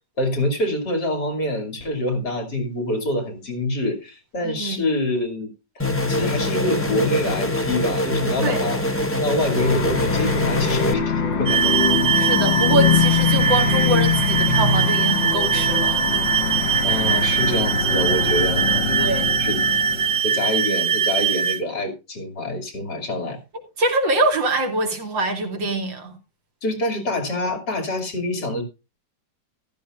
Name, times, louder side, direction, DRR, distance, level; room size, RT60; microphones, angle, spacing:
voice 1, 0.2-8.8 9.2-11.7 16.8-19.1 19.4-19.6 20.2-23.4 26.6-28.6, left 1 dB, 60° left, 3.3 m, -26 dB
voice 2, 4.4-4.8 8.4-8.6 12.1-16.0 16.3-16.4 19.0-19.3 23.8-26.1, right 2 dB, 85° right, 2.9 m, -24 dB
sound 1, 5.8-10.9, left 1 dB, 10° left, 1.0 m, -24 dB
sound 2, 9.6-20.2, left 5 dB, 85° left, 2.3 m, -23 dB
sound 3, 11.5-21.6, right 7 dB, 25° right, 0.8 m, -22 dB
14.5 x 12.5 x 2.4 m
omnidirectional pair, 2.0 m